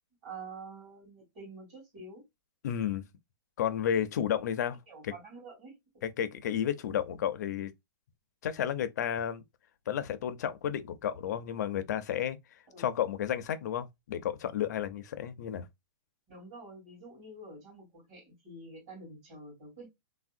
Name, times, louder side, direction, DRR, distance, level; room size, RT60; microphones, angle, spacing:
voice 1, 0.2-2.3 4.9-5.8 12.7-12.8 16.3-19.9, right 3 dB, 30° right, 2.2 m, -47 dB
voice 2, 2.6-3.0 3.6-4.8 5.0-5.1 6.0-7.7 8.4-9.4 9.9-12.4 12.8-15.7, left 9 dB, 45° left, 0.4 m, -32 dB
3.4 x 2.1 x 2.5 m
hypercardioid pair, 170°, 12 cm